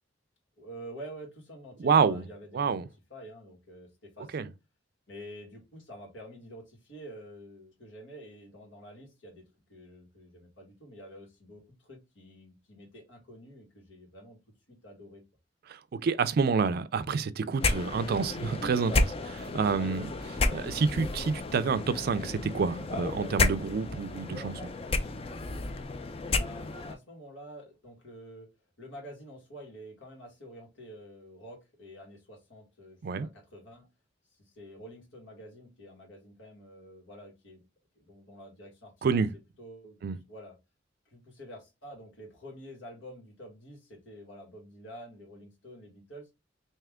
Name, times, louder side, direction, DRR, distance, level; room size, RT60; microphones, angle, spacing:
voice 1, 0.6-2.7 3.1-4.5 5.1-14.4 14.7-15.2 19.7-20.2 26.3-28.5 28.8-33.9 34.4-37.6 38.0-38.9 39.6-40.0 40.3-40.6 41.1-46.3, equal, 80° left, 1.7 m, -48 dB
voice 2, 1.8-2.2 2.5-2.9 4.3-4.5 15.7-20.1 20.5-24.7 33.0-33.3 39.0-39.3 40.0-40.2, right 5 dB, 55° right, 0.4 m, -28 dB
sound 1, 17.6-27.0, left 3 dB, 30° left, 0.4 m, -32 dB
3.3 x 2.8 x 3.5 m
head